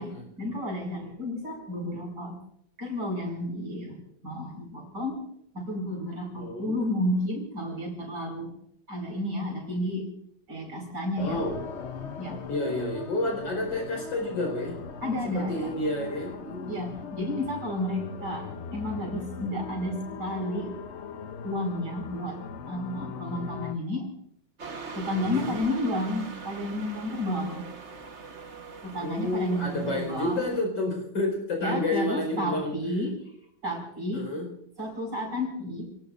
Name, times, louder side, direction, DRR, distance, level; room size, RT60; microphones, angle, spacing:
voice 1, 0.0-2.4 2.8-4.0 4.2-5.3 5.5-8.5 8.9-10.1 10.5-11.4 12.2-12.4 15.0-15.7 16.7-20.7 21.4-24.1 24.9-27.6 28.8-30.4 31.6-33.1 33.6-34.3 34.8-35.9, left 1 dB, 65° right, 0 dB, 5.9 m, -31 dB
voice 2, 6.4-6.9 11.2-11.6 12.5-14.8 15.3-17.0 23.2-23.5 25.1-25.6 29.0-32.8 34.1-34.5, left 1 dB, 85° left, 1 dB, 5.5 m, -30 dB
sound 1, 11.2-23.7, left 6 dB, 50° left, 0.9 m, -40 dB
sound 2, 24.6-30.6, right 3 dB, 40° right, 1.5 m, -42 dB
29.5 x 18.5 x 2.6 m, 0.71 s
omnidirectional pair, 2.0 m